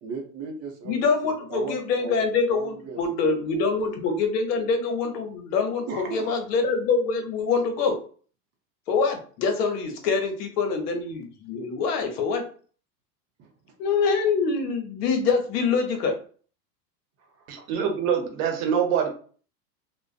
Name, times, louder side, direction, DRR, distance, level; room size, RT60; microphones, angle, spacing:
voice 1, 0.0-2.2 2.5-3.7 5.9-6.4 13.4-13.7 17.2-17.7, right 4 dB, 30° right, 2 dB, 0.6 m, -38 dB
voice 2, 0.9-7.9 8.9-12.4 13.8-16.1, left 4 dB, 70° left, 4 dB, 0.8 m, -25 dB
voice 3, 17.5-19.1, right 7 dB, 60° right, 4 dB, 0.8 m, -24 dB
2.5 x 2.1 x 2.4 m, 0.43 s
hypercardioid pair, 105°, 49 cm